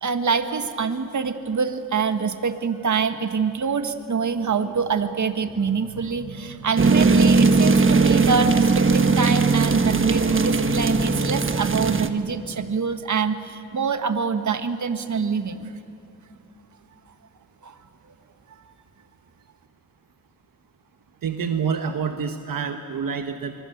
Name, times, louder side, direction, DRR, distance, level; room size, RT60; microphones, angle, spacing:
voice 1, 0.0-15.7 17.6-17.8, right 5 dB, 60° right, 8 dB, 1.6 m, -25 dB
sound 1, 6.8-12.1, right 4 dB, 35° right, 1.3 m, -19 dB
voice 2, 21.2-23.5, right 6 dB, 75° right, 6 dB, 1.3 m, -27 dB
24.0 x 23.5 x 8.0 m, 2.5 s
cardioid pair, 70°, 34 cm